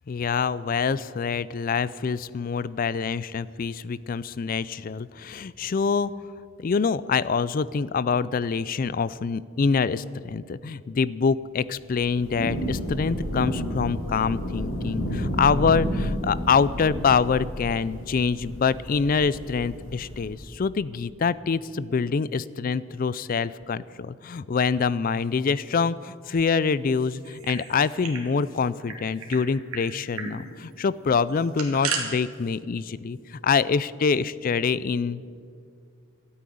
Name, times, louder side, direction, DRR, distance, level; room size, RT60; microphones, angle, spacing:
voice 1, 0.1-6.1 6.6-35.3, left 5 dB, 40° left, 18 dB, 0.3 m, -25 dB
Thunder / Rain, 11.8-20.4, equal, 80° left, 2.8 m, -31 dB
sound 1, 27.2-28.3 28.5-28.6 28.9-29.4 29.7-29.8 30.1-30.3 31.3-32.0, right 6 dB, 85° right, 2.3 m, -33 dB
13.0 x 8.6 x 10.0 m, 2.3 s
head